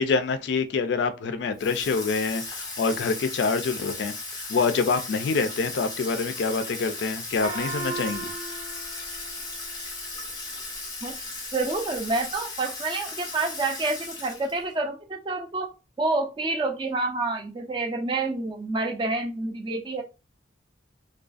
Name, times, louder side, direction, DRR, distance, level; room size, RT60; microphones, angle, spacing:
voice 1, 0.0-4.1 4.5-8.3, left 4 dB, 65° left, 0.3 m, -26 dB
Water tap faucet / Sink (filling or washing), 1.6-14.7, left 3 dB, 20° left, 0.6 m, -36 dB
Gong, 7.4-10.3, right 2 dB, 80° right, 0.8 m, -36 dB
voice 2, 11.5-15.7 16.0-20.0, right 3 dB, 25° right, 0.3 m, -28 dB
2.4 x 2.2 x 2.4 m
head